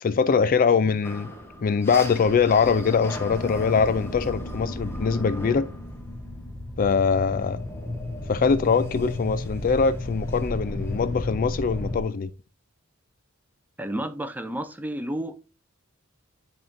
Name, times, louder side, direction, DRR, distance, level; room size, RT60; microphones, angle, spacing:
voice 1, 0.0-1.3 1.6-5.7 6.8-7.6 8.3-12.3, left 5 dB, 40° left, 0.4 m, -22 dB
sound 1, 1.0-12.0, left 1 dB, 10° left, 0.9 m, -33 dB
voice 2, 13.8-15.4, right 1 dB, 10° right, 0.5 m, -31 dB
10.0 x 3.6 x 2.6 m
head